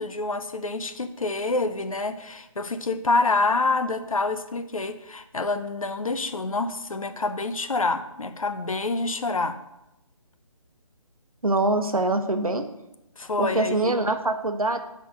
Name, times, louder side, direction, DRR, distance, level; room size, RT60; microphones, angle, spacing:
voice 1, 0.0-9.6 13.2-13.9, left 3 dB, 75° left, 10 dB, 0.8 m, -27 dB
voice 2, 11.4-12.6 13.4-14.8, right 2 dB, 85° right, 7 dB, 1.0 m, -24 dB
6.0 x 5.2 x 6.4 m, 0.88 s
figure-of-eight pair, 145°, 18 cm